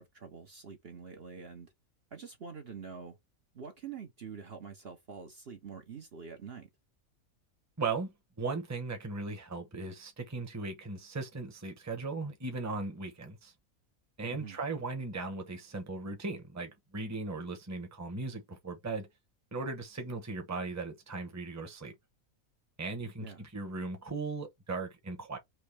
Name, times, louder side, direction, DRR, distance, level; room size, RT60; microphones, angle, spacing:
voice 1, 0.0-1.7 2.1-3.2 3.5-6.7 14.3-14.6 23.2-23.4, right 6 dB, 50° right, 1.1 m, -46 dB
voice 2, 7.8-8.1 8.4-13.5 14.2-19.1 19.5-21.9 22.8-25.4, right 3 dB, 15° right, 0.9 m, -37 dB
4.5 x 3.1 x 3.3 m
omnidirectional pair, 1.5 m